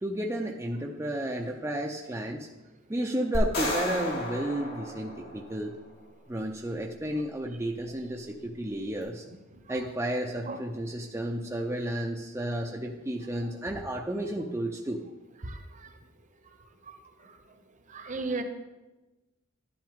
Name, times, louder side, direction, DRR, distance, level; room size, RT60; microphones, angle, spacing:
voice 1, 0.0-2.5 2.9-5.7 6.3-9.2 9.7-15.0, right 1 dB, 15° right, 0 dB, 0.6 m, -32 dB
sound 1, 3.3-5.7, left 1 dB, 80° left, 4.3 m, -33 dB
voice 2, 17.9-18.4, right 3 dB, 40° right, 7 dB, 1.0 m, -33 dB
11.5 x 10.5 x 3.6 m, 1.1 s
head